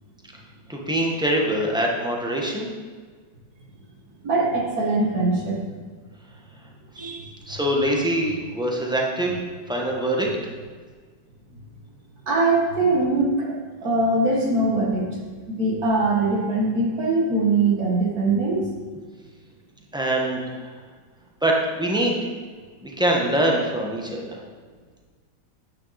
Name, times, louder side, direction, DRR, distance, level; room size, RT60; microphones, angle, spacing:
voice 1, 0.7-2.7 7.5-9.4 9.7-10.3 19.9-20.7 21.4-22.3 22.8-24.4, right 1 dB, 5° right, -1 dB, 1.2 m, -23 dB
voice 2, 4.2-5.6 7.0-7.3 12.3-13.5 13.8-15.1 15.5-18.7, right 2 dB, 55° right, -3 dB, 2.0 m, -22 dB
9.8 x 9.7 x 4.2 m, 1.5 s
omnidirectional pair, 2.0 m